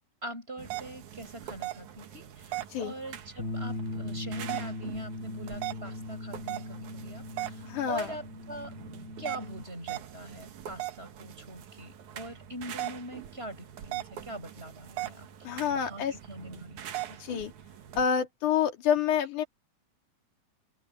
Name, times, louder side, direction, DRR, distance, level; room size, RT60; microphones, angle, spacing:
voice 1, 0.2-8.7 9.2-16.9, right 1 dB, 15° right, 7.8 m, -43 dB
sound 1, 0.6-18.1, right 13 dB, 75° right, 2.9 m, -41 dB
Bass guitar, 3.4-9.6, left 2 dB, 35° left, 6.4 m, -39 dB
voice 2, 7.6-8.2 15.4-16.2 17.2-17.5 18.0-19.5, left 8 dB, 75° left, 3.8 m, -28 dB
open air
omnidirectional pair, 3.5 m